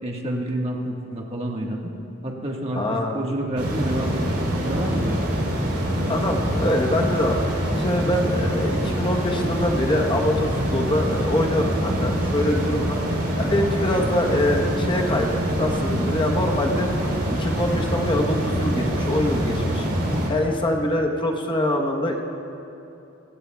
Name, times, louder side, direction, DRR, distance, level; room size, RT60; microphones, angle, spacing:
voice 1, 0.0-1.9 2.2-5.4, right 1 dB, 30° right, -1 dB, 1.5 m, -28 dB
voice 2, 2.7-3.2 6.1-13.0 13.4-16.9 17.4-19.9 20.3-22.2, left 1 dB, 25° left, 1 dB, 1.0 m, -24 dB
sound 1, 3.6-20.3, equal, 45° right, 3.6 m, -25 dB
27.5 x 16.0 x 2.3 m, 2.9 s
head